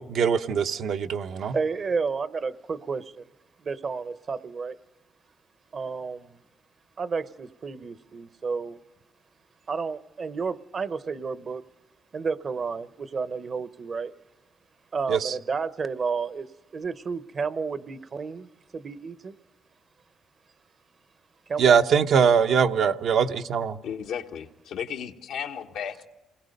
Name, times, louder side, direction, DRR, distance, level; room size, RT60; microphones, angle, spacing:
voice 1, 0.0-1.6 15.1-15.3 21.6-23.7, right 7 dB, 70° right, 0.9 m, -22 dB
voice 2, 1.3-3.2 3.6-4.8 5.7-6.4 7.0-8.8 9.7-11.6 12.1-14.1 14.9-19.3 21.5-21.7, right 5 dB, 45° right, 0.9 m, -31 dB
voice 3, 23.8-26.1, left 8 dB, 85° left, 1.3 m, -34 dB
28.5 x 20.5 x 5.3 m
cardioid pair, 90°, 0 cm